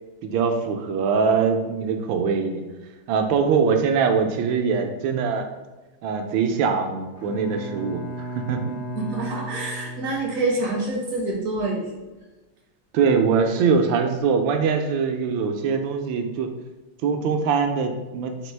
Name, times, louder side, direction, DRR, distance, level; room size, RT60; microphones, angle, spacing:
voice 1, 0.2-2.6 3.1-5.5 6.0-8.8 12.9-16.5 17.0-18.5, right 5 dB, 85° right, 5 dB, 1.3 m, -22 dB
Bowed string instrument, 7.2-10.7, right 2 dB, 55° left, 0.8 m, -35 dB
voice 2, 9.0-11.9, right 2 dB, 65° right, -1 dB, 0.9 m, -26 dB
4.4 x 2.9 x 3.2 m, 1.1 s
omnidirectional pair, 2.0 m